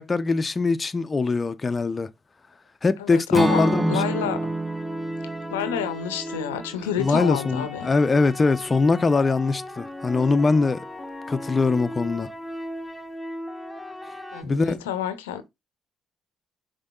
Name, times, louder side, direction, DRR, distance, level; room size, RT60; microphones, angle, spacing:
voice 1, 0.0-2.1 2.8-4.0 7.0-10.8 11.3-12.3 14.4-14.8, left 3 dB, 30° left, 0.4 m, -22 dB
voice 2, 3.0-4.4 5.5-7.9 14.3-15.4, left 9 dB, 90° left, 0.6 m, -29 dB
Acoustic guitar / Strum, 3.3-7.4, right 2 dB, 20° right, 0.5 m, -28 dB
sound 1, 3.5-14.4, equal, 10° left, 1.4 m, -37 dB
5.2 x 3.6 x 2.2 m
hypercardioid pair, 50°, 0 cm